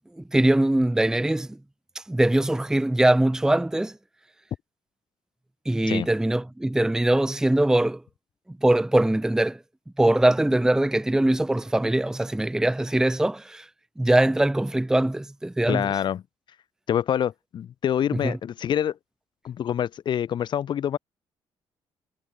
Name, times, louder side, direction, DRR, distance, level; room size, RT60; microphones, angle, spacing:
voice 1, 0.2-1.6 1.9-4.0 5.7-8.0 8.6-9.6 10.0-13.7 14.0-15.9 18.2-18.3, right 1 dB, 5° right, 0.7 m, -22 dB
voice 2, 15.7-16.2 16.9-19.0 19.4-21.0, left 9 dB, 55° left, 0.8 m, -26 dB
cardioid pair, 125°, 10 cm